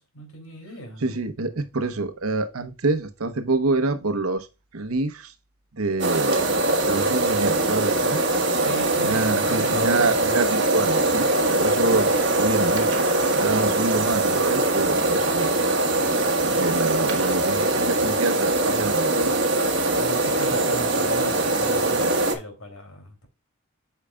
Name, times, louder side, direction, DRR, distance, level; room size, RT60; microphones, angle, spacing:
voice 1, 0.0-1.0 8.5-10.1 20.0-23.3, right 1 dB, 85° left, 2.9 m, -39 dB
voice 2, 1.0-4.5 4.7-5.3 5.7-6.5 6.8-8.2 9.0-13.1 13.4-15.5 16.4-19.4 19.9-20.1, right 3 dB, 90° right, 1.0 m, -27 dB
sound 1, 6.0-22.3, right 2 dB, 55° right, 1.4 m, -22 dB
8.6 x 5.7 x 2.3 m
head